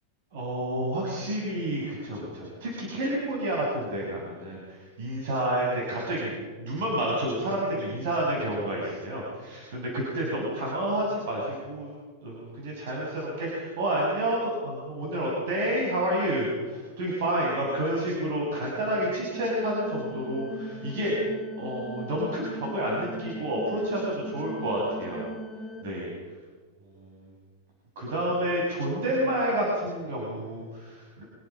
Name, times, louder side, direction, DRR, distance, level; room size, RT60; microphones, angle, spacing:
voice 1, 0.3-11.9 12.2-21.2 21.6-25.3 25.8-26.1 26.9-27.3 27.9-31.2, right 1 dB, 60° right, -3 dB, 6.9 m, -29 dB
sound 1, 19.3-25.8, right 1 dB, 5° right, 2.6 m, -39 dB
25.5 x 22.0 x 5.9 m, 1.5 s
supercardioid pair, 170°, 0 cm